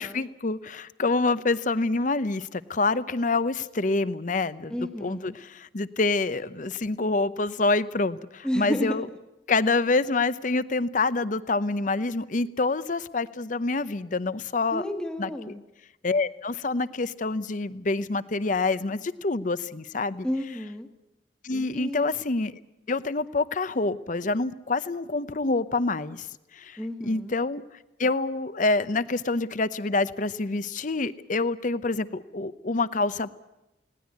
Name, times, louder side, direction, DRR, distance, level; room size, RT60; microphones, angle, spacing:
voice 1, 0.0-9.1 9.5-14.8 15.2-15.3 16.0-20.3 21.4-22.6 22.9-26.3 26.5-26.8 27.0-27.6 28.0-33.3, left 3 dB, 45° left, 15 dB, 0.8 m, -27 dB
voice 2, 4.7-5.3 8.4-9.0 14.7-15.6 20.2-20.9 21.7-22.2 26.8-27.3, equal, 5° left, 4 dB, 1.4 m, -31 dB
20.0 x 18.0 x 9.4 m, 0.94 s
head